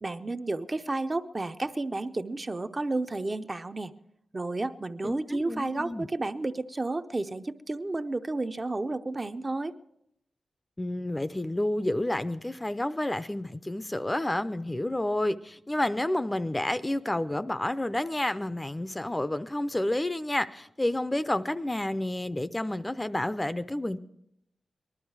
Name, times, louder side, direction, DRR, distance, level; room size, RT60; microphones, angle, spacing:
voice 1, 0.0-3.9 4.3-9.7, right 2 dB, 35° right, 8 dB, 0.6 m, -31 dB
voice 2, 5.0-6.1 10.8-24.0, left 1 dB, 20° left, 12 dB, 0.5 m, -30 dB
19.5 x 12.0 x 4.7 m, 0.79 s
cardioid pair, 65°, 0 cm